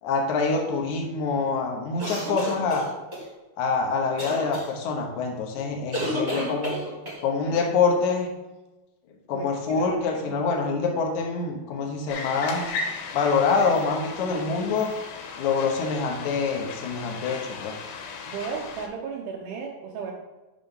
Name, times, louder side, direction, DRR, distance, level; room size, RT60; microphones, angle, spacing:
voice 1, 0.0-2.9 3.6-6.8 7.2-8.3 9.3-12.7 13.1-14.9 15.4-17.8, left 4 dB, 75° left, 2 dB, 1.8 m, -25 dB
sound 1, 2.0-3.2 4.2-4.7 5.9-7.2, equal, 25° right, 0.9 m, -30 dB
voice 2, 9.3-9.9 10.3-10.5 18.3-20.1, right 6 dB, 85° right, -1 dB, 1.8 m, -35 dB
sound 2, 12.1-18.9, left 4 dB, 90° left, 2.9 m, -36 dB
7.9 x 5.5 x 3.7 m, 1.1 s
omnidirectional pair, 4.7 m